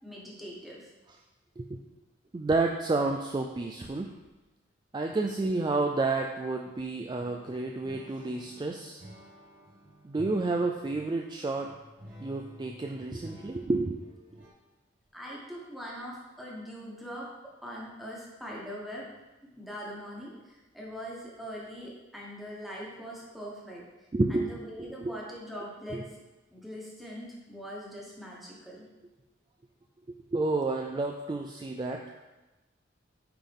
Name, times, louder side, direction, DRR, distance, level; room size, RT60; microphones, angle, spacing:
voice 1, 0.0-0.9 15.1-17.3 17.6-19.0 19.6-26.1 26.5-28.9, equal, ahead, -5 dB, 1.3 m, -42 dB
voice 2, 2.3-4.1 4.9-9.0 10.0-11.7 12.2-14.1 24.1-24.5 24.8-25.1 25.9-26.0 30.1-32.0, right 3 dB, 25° right, 2 dB, 0.3 m, -30 dB
sound 1, 7.2-14.5, equal, 80° right, 2.1 m, -51 dB
9.1 x 3.8 x 3.6 m, 1.1 s
head